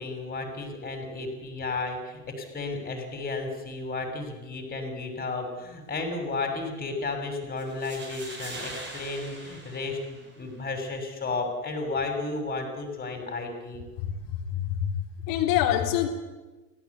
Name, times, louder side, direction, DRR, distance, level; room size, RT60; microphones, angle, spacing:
voice 1, 0.0-13.8, left 3 dB, 20° left, 4 dB, 6.2 m, -33 dB
sound 1, 7.6-10.6, right 2 dB, 25° right, 6.3 m, -42 dB
voice 2, 14.5-16.1, left 11 dB, 45° left, 5 dB, 3.9 m, -26 dB
23.5 x 17.0 x 8.4 m, 1.2 s
hypercardioid pair, 100°, 47 cm